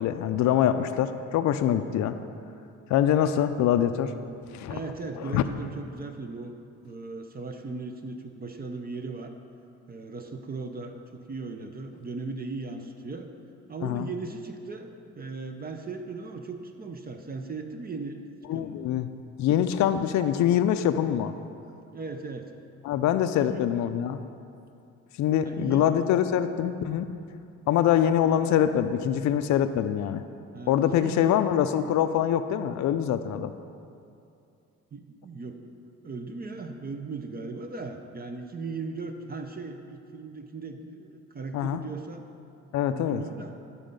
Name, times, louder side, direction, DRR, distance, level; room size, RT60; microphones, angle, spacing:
voice 1, 0.0-2.1 2.9-4.1 4.5-4.7 5.3-5.4 13.8-14.1 18.5-19.1 19.4-21.3 22.8-24.2 25.2-27.1 27.7-30.2 30.7-33.5 41.5-41.8 42.7-43.2, left 10 dB, 70° left, 9 dB, 0.4 m, -24 dB
voice 2, 4.7-6.6 6.8-9.3 9.9-13.3 13.7-14.9 15.2-18.2 18.5-18.9 21.9-22.5 23.4-23.7 25.4-25.9 30.5-31.4 34.9-35.8 36.0-42.3 42.9-43.6, right 3 dB, 30° right, 5 dB, 0.6 m, -38 dB
10.5 x 4.2 x 5.2 m, 2.5 s
cardioid pair, 90°, 30 cm